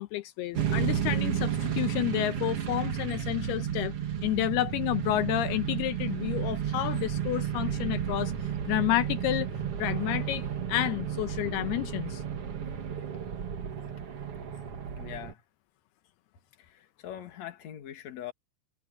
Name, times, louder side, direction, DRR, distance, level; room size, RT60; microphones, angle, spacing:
voice 1, 0.0-3.9 4.2-8.3 8.7-9.5 9.8-12.2, left 15 dB, 85° left, 2.8 m, -30 dB
sound 1, 0.5-15.3, right 9 dB, 50° right, 2.1 m, -32 dB
voice 2, 15.0-15.4 16.6-18.3, left 11 dB, 50° left, 2.9 m, -42 dB
omnidirectional pair, 4.5 m